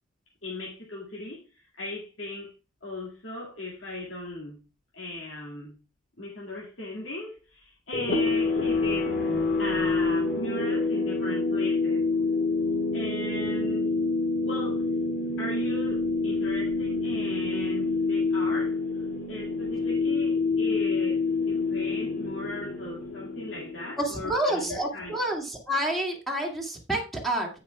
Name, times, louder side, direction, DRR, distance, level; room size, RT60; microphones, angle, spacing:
voice 1, 0.4-2.5 2.8-4.6 4.9-5.8 6.2-9.2 9.6-12.1 12.9-13.9 14.4-18.8 19.3-25.2, left 2 dB, 90° left, 2.1 m, -37 dB
sound 1, 7.9-24.2, left 3 dB, 60° left, 2.9 m, -27 dB
voice 2, 24.0-27.5, right 1 dB, ahead, 2.2 m, -28 dB
15.5 x 5.5 x 2.3 m
head